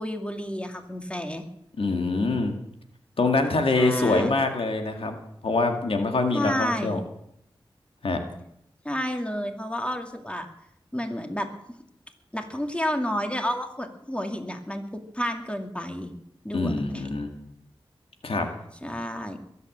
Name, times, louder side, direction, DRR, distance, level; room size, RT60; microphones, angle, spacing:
voice 1, 0.0-1.4 3.7-4.3 6.3-7.0 8.8-10.5 10.9-11.5 12.3-14.8 15.1-16.1 16.4-17.0 18.8-19.4, equal, 10° left, 4 dB, 2.5 m, -30 dB
voice 2, 1.8-2.5 3.2-5.2 5.4-7.0 8.0-8.2 16.5-17.3 18.2-18.5, left 3 dB, 85° left, 4 dB, 2.0 m, -24 dB
22.0 x 8.3 x 7.8 m, 0.76 s
wide cardioid pair, 50°, 9 cm